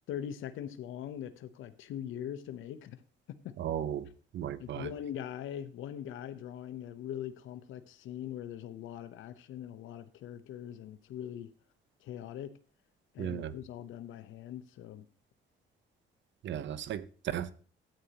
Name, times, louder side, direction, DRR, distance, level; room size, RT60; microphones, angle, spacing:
voice 1, 0.1-3.0 3.3-3.6 4.6-11.5 12.0-12.5 13.1-15.1, left 10 dB, 80° left, 0.8 m, -41 dB
voice 2, 3.6-4.1 4.3-4.9 13.2-13.6 16.4-17.5, right 10 dB, 70° right, 0.8 m, -35 dB
13.0 x 8.6 x 2.9 m
cardioid pair, 90°, 20 cm